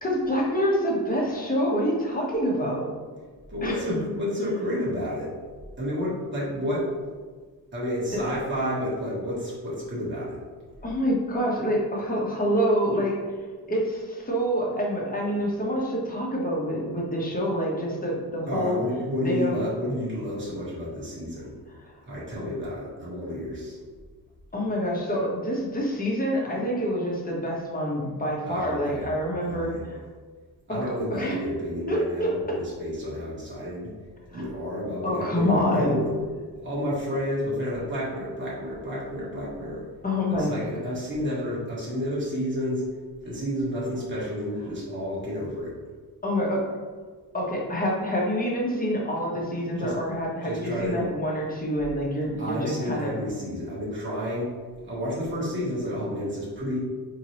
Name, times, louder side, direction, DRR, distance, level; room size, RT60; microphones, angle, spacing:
voice 1, 0.0-2.9 3.6-3.9 10.8-13.2 13.6-18.8 19.2-19.6 24.5-30.0 30.7-30.8 31.1-31.4 31.9-32.6 34.3-34.4 35.0-36.0 40.0-40.5 46.2-46.6 47.3-53.1, equal, 20° left, -3 dB, 1.1 m, -26 dB
voice 2, 3.5-5.3 5.8-6.9 7.7-10.4 18.5-21.5 22.1-23.8 28.4-29.1 29.4-29.8 30.7-33.9 34.3-36.2 36.6-39.8 40.3-42.8 43.2-45.8 49.8-49.9 50.4-51.0 52.4-54.5 54.8-56.8, equal, 30° right, -7 dB, 1.4 m, -30 dB
4.5 x 2.9 x 3.1 m, 1.5 s
cardioid pair, 90°, 39 cm